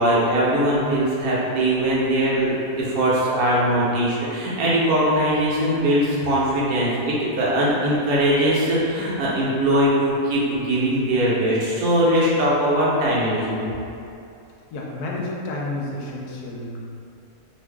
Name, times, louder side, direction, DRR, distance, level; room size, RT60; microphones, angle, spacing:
voice 1, 0.0-2.5 2.8-13.7, right 1 dB, 80° right, -7 dB, 1.3 m, -21 dB
voice 2, 14.7-16.8, left 2 dB, 80° left, -3 dB, 1.1 m, -30 dB
2.9 x 2.5 x 3.4 m, 2.6 s
omnidirectional pair, 1.6 m